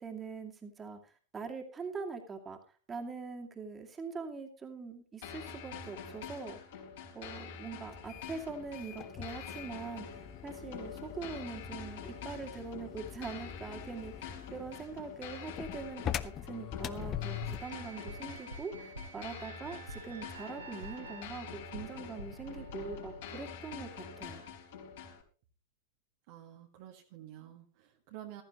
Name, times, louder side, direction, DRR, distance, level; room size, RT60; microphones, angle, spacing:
voice 1, 0.0-2.6 2.9-6.8 7.1-24.5, right 4 dB, 20° right, 4 dB, 2.3 m, -43 dB
sound 1, 5.2-25.2, left 6 dB, 55° left, 4.3 m, -46 dB
sound 2, 7.9-17.8, left 11 dB, 30° left, 0.7 m, -43 dB
sound 3, 17.0-23.2, right 1 dB, 80° right, 3.0 m, -47 dB
voice 2, 26.3-28.4, right 12 dB, 50° right, 2 dB, 1.6 m, -50 dB
15.0 x 14.0 x 3.0 m, 0.36 s
figure-of-eight pair, 90°, 0 cm